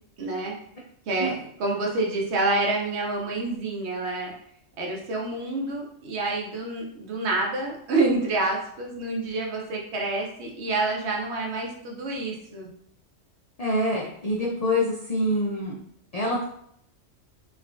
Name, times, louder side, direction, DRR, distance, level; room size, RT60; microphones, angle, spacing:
voice 1, 0.2-0.6 1.1-1.3 1.6-4.3 4.8-12.7, right 2 dB, 65° right, -1 dB, 0.9 m, -28 dB
voice 2, 13.6-15.8 16.1-16.4, left 1 dB, 75° left, -3 dB, 0.3 m, -25 dB
3.2 x 2.3 x 2.5 m, 0.70 s
omnidirectional pair, 1.3 m